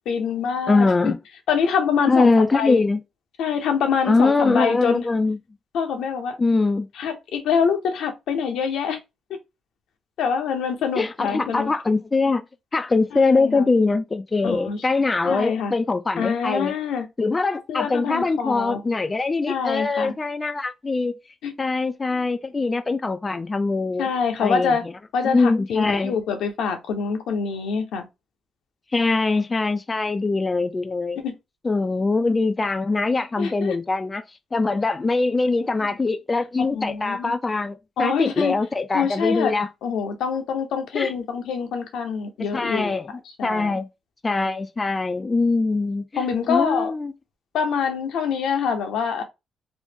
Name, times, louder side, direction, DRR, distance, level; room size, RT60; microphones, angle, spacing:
voice 1, 0.1-1.1 1.5-2.8 3.4-5.1 5.7-6.4 6.9-9.0 10.2-11.7 13.1-13.7 14.4-14.8 15.2-15.7 16.2-17.1 17.7-18.8 19.5-20.1 21.4-21.5 24.0-24.8 25.1-28.0 31.2-31.3 33.4-33.8 35.5-36.0 36.7-37.3 38.0-38.6 38.9-39.5 39.8-42.9 43.4-43.8 46.2-46.9 47.5-49.2, left 6 dB, 80° left, 0.7 m, -25 dB
voice 2, 0.7-1.2 2.1-3.0 4.1-5.4 6.4-6.9 11.0-12.4 12.7-16.7 17.2-21.1 21.6-24.1 24.4-24.9 25.2-26.2 28.9-31.2 31.6-34.2 34.5-39.7 40.9-41.1 42.5-43.1 43.4-43.9 44.2-47.1, left 3 dB, 30° left, 0.3 m, -22 dB
3.0 x 2.1 x 3.4 m
supercardioid pair, 65°, 0 cm